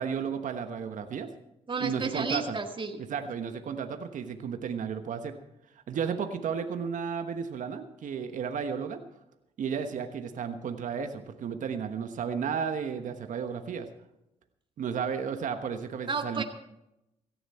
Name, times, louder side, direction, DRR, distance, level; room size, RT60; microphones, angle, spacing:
voice 1, 0.0-1.3 1.8-2.6 3.1-5.3 5.9-9.0 9.6-13.9 14.8-16.4, right 6 dB, 65° right, 8 dB, 1.2 m, -33 dB
voice 2, 1.7-3.0 16.1-16.4, right 4 dB, 35° right, 4 dB, 1.9 m, -32 dB
17.5 x 14.0 x 4.3 m, 0.86 s
hypercardioid pair, 50°, 14 cm